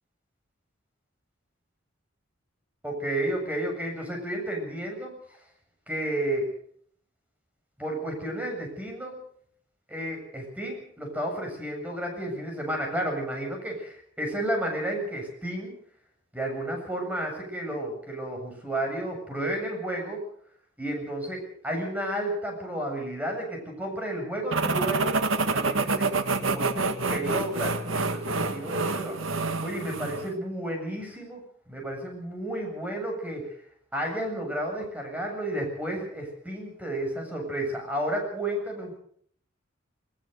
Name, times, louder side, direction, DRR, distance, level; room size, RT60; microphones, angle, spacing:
voice 1, 2.8-5.4 5.9-6.5 7.8-9.1 9.9-15.8 16.3-20.2 20.8-31.4 31.7-33.5 33.9-39.0, right 1 dB, 10° right, 2 dB, 7.5 m, -32 dB
sound 1, 24.5-30.3, right 3 dB, 85° right, 1.7 m, -27 dB
20.0 x 20.0 x 6.8 m, 0.62 s
head